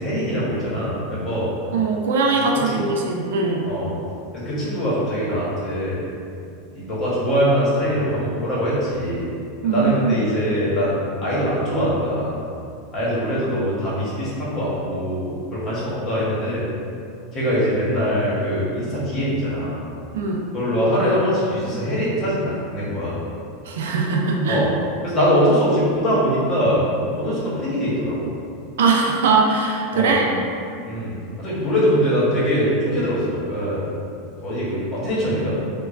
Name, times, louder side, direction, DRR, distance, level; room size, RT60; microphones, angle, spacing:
voice 1, 0.0-1.5 2.7-2.8 3.7-3.9 4.3-6.1 6.7-9.3 9.6-12.4 12.9-16.6 17.3-19.8 20.5-23.2 24.5-24.7 25.0-26.8 27.1-28.3 29.9-30.1 30.9-33.9 34.4-35.6, equal, 30° left, -8 dB, 1.1 m, -22 dB
voice 2, 1.7-3.7 9.6-10.2 20.1-20.4 23.6-24.7 28.8-30.4, right 4 dB, 85° right, 0 dB, 0.4 m, -20 dB
2.9 x 2.2 x 2.5 m, 2.5 s
supercardioid pair, 130°, 0 cm